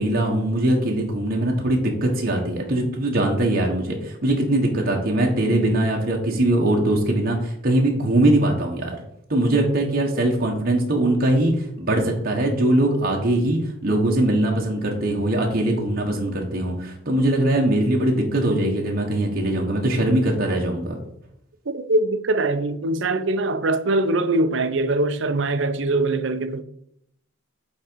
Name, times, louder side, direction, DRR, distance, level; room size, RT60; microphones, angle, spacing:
voice 1, 0.0-9.0 9.3-21.0, right 1 dB, 50° right, 1.3 m, -21 dB
voice 2, 21.7-26.6, right 2 dB, 65° right, 0.6 m, -22 dB
8.8 x 3.8 x 4.6 m
head